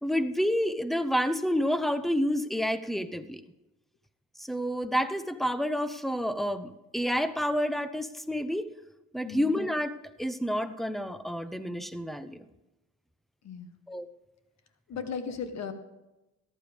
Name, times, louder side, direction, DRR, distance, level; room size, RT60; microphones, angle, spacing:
voice 1, 0.0-3.4 4.4-8.7 9.1-12.4 13.9-14.1, equal, ahead, 12 dB, 0.8 m, -29 dB
voice 2, 13.4-13.7 14.9-15.7, left 6 dB, 60° left, 9 dB, 1.5 m, -36 dB
14.5 x 11.5 x 3.5 m, 1.0 s
cardioid pair, 90°, 30 cm